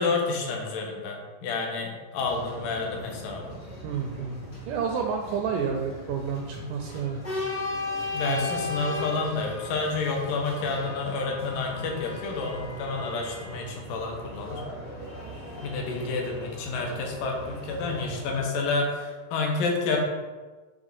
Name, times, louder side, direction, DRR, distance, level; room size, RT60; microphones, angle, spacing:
voice 1, 0.0-3.6 6.6-6.8 8.1-14.6 15.6-20.0, left 3 dB, 75° left, 1 dB, 2.5 m, -29 dB
sound 1, 2.2-18.4, left 2 dB, 55° left, 0.6 m, -37 dB
voice 2, 3.8-7.2 8.3-8.6, right 6 dB, 80° right, 3 dB, 1.9 m, -30 dB
6.3 x 3.5 x 5.3 m, 1.3 s
omnidirectional pair, 4.2 m